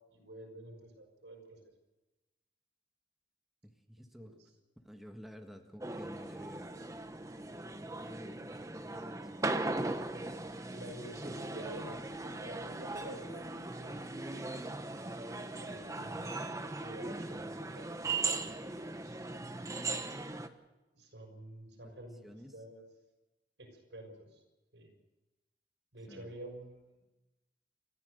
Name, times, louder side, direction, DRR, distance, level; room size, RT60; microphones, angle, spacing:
voice 1, 0.1-1.7 4.2-4.4 10.7-14.1 15.5-19.6 20.9-22.8 23.6-24.4 24.7-24.9 25.9-27.0, right 1 dB, 85° right, 3 dB, 6.3 m, -50 dB
voice 2, 3.6-4.3 4.8-6.7 7.3-9.5 22.2-22.5 26.1-26.4, equal, ahead, 3 dB, 1.7 m, -52 dB
sound 1, 5.8-20.5, right 3 dB, 20° right, 1.1 m, -39 dB
29.5 x 13.5 x 6.8 m, 1.1 s
head